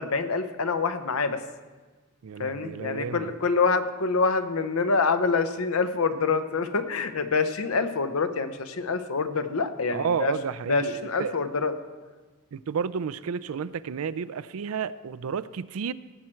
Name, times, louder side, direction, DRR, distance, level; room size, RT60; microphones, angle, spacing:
voice 1, 0.0-1.4 2.4-10.3 10.7-11.7, left 4 dB, 85° left, 10 dB, 0.8 m, -26 dB
voice 2, 2.2-3.3 9.9-11.4 12.5-15.9, right 6 dB, 80° right, 16 dB, 0.4 m, -31 dB
17.5 x 7.7 x 4.5 m, 1.3 s
head